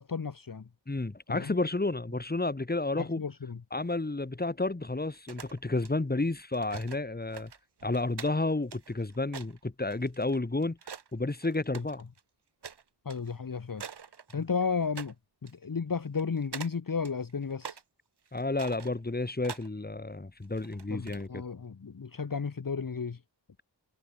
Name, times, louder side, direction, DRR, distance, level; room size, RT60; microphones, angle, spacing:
voice 1, 0.0-0.7 1.3-1.6 3.0-3.6 13.0-13.8 14.3-15.1 15.4-17.8 20.9-23.2, left 5 dB, 50° left, 1.5 m, -33 dB
voice 2, 0.9-3.2 3.7-7.5 7.8-10.8 11.1-12.0 18.3-21.4, left 2 dB, 20° left, 2.3 m, -31 dB
sound 1, 5.1-5.9 6.5-7.0 7.3-11.1 11.4-12.2 12.6-12.8 13.1-13.3 13.8-14.6 15.0-15.1 15.5-15.6 16.2-16.7 17.0-17.8 18.3-19.7 20.4-21.3, right 6 dB, 65° right, 1.5 m, -44 dB
wide cardioid pair, 95°, 42 cm